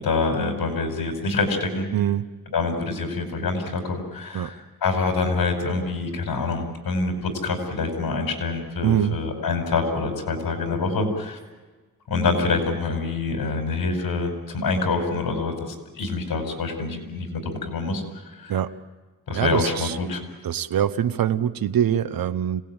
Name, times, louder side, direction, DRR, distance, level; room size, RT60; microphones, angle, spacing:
voice 1, 0.0-1.9 2.5-4.6 4.8-11.4 12.1-18.5 19.3-20.2, left 3 dB, 85° left, 4 dB, 5.0 m, -26 dB
voice 2, 1.9-2.3 4.3-4.5 8.8-9.2 18.5-18.8 19.3-20.0 20.4-22.6, right 10 dB, 75° right, 12 dB, 1.0 m, -23 dB
26.5 x 18.5 x 8.9 m, 1.3 s
wide cardioid pair, 100°, 35 cm